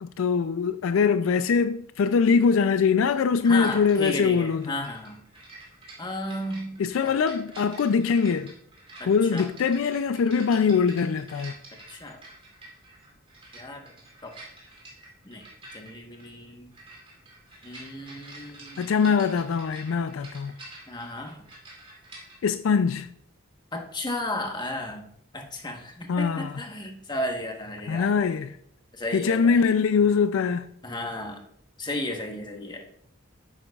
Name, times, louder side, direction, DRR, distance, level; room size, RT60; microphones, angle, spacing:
voice 1, 0.0-4.7 6.8-8.5 9.1-11.5 18.8-20.5 22.4-23.1 26.1-26.6 27.9-28.6 29.1-30.7, left 5 dB, 70° left, 0.4 m, -23 dB
voice 2, 3.4-5.2 6.0-7.1 9.0-9.5 11.9-12.2 13.5-13.9 14.2-14.4 15.2-16.7 17.6-18.9 20.9-21.4 23.7-25.1 25.3-28.1 28.9-29.7 30.8-31.4 31.8-32.9, left 1 dB, 20° left, 1.1 m, -34 dB
sound 1, 3.6-22.4, right 2 dB, 25° right, 2.5 m, -48 dB
10.0 x 8.5 x 2.4 m
head